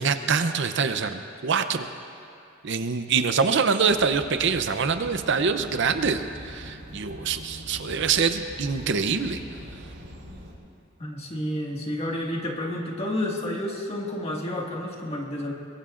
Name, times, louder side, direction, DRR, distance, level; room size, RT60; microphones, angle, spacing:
voice 1, 0.0-1.9 2.6-9.4, right 5 dB, 60° right, 8 dB, 0.6 m, -25 dB
sound 1, 3.9-10.5, equal, 85° right, 3.9 m, -42 dB
voice 2, 11.0-15.5, left 1 dB, 30° left, -1 dB, 1.8 m, -30 dB
22.5 x 21.5 x 2.5 m, 2.5 s
head